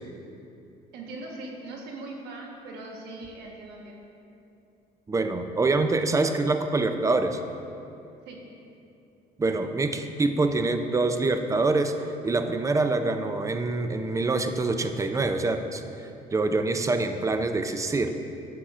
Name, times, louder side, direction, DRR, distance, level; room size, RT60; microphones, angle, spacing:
voice 1, 0.9-4.0 8.3-8.4, right 2 dB, 80° right, -1 dB, 1.3 m, -40 dB
voice 2, 5.1-7.4 9.4-11.9 12.2-18.1, right 3 dB, 20° right, 7 dB, 0.5 m, -25 dB
10.0 x 7.6 x 2.5 m, 2.7 s
cardioid pair, 110°, 17 cm